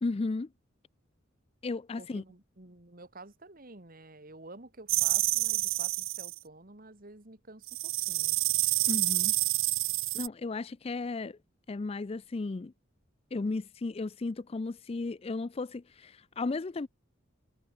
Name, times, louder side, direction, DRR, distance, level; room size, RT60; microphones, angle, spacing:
voice 1, 0.0-0.5 1.6-2.2 8.9-9.3 10.1-11.4 11.7-12.7 13.3-16.9, left 3 dB, 30° left, 0.4 m, -34 dB
voice 2, 2.0-8.4, right 2 dB, 45° right, 2.3 m, -50 dB
sound 1, 4.9-6.4 7.7-10.3, right 20 dB, 80° right, 0.5 m, -28 dB
head